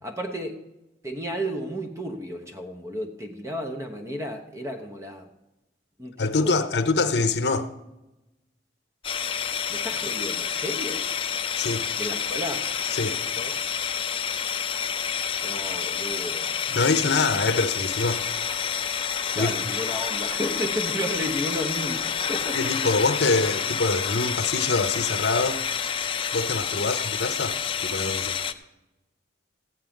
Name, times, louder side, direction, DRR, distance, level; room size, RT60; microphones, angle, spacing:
voice 1, 0.0-0.6 1.0-5.3 6.0-6.7 9.7-11.1 12.0-12.7 13.4-13.5 15.4-16.5 19.3-22.7 26.8-26.9, equal, 15° right, 1.0 m, -33 dB
voice 2, 6.2-7.7 11.6-11.8 12.9-13.2 16.7-18.2 19.3-19.5 22.5-25.6 26.3-28.4, left 3 dB, 65° left, 0.7 m, -25 dB
sound 1, 9.0-28.5, left 7 dB, 30° left, 0.5 m, -29 dB
15.0 x 5.6 x 9.0 m
head